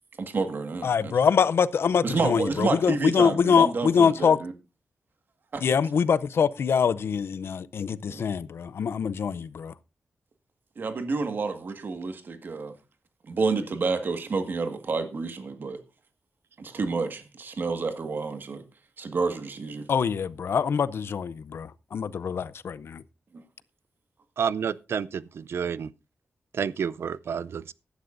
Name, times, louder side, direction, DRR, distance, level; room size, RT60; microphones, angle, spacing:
voice 1, 0.2-1.2 2.0-4.5 5.5-5.6 8.1-8.2 10.8-12.7 13.3-15.8 16.6-18.6 19.0-19.9, right 4 dB, 50° right, 1.7 m, -29 dB
voice 2, 0.8-4.4 5.6-9.7 19.9-23.0, left 6 dB, 70° left, 0.6 m, -24 dB
voice 3, 24.4-25.9 26.6-27.7, right 7 dB, 75° right, 0.5 m, -29 dB
16.0 x 11.5 x 2.6 m
wide cardioid pair, 160°, 4 cm